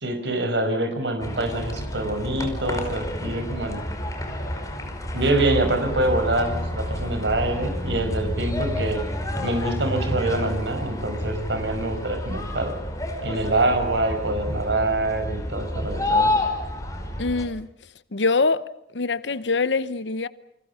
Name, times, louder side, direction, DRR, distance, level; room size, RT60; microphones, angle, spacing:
voice 1, 0.0-3.8 5.1-9.0 9.4-12.8 13.2-16.3, right 2 dB, 80° right, 5.4 m, -25 dB
sound 1, 1.2-17.4, left 1 dB, 20° left, 5.2 m, -29 dB
voice 2, 17.2-17.7 18.1-20.3, left 3 dB, 85° left, 0.9 m, -24 dB
29.0 x 25.5 x 5.7 m
head